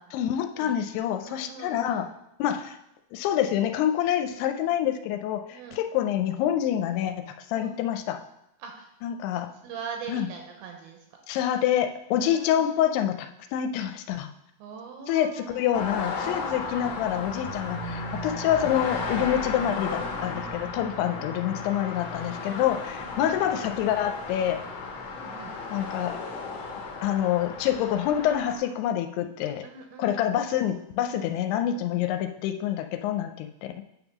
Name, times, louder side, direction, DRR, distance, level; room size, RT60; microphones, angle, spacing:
voice 1, 0.1-2.1 2.4-2.8 3.1-8.2 9.0-9.5 10.1-10.3 11.3-14.3 15.1-24.6 25.7-26.2 27.0-29.7 30.0-33.7, left 10 dB, 85° left, 7 dB, 2.5 m, -27 dB
voice 2, 1.2-2.1 5.5-5.8 7.5-7.7 8.6-8.9 9.6-11.1 12.2-12.7 14.6-15.7 16.3-16.8 20.9-21.3 22.1-22.7 25.1-25.6 29.6-30.5, right 6 dB, 80° right, 2 dB, 2.3 m, -42 dB
sound 1, 15.7-28.6, left 3 dB, 70° left, 1.8 m, -34 dB
9.3 x 3.6 x 5.9 m, 0.84 s
omnidirectional pair, 4.7 m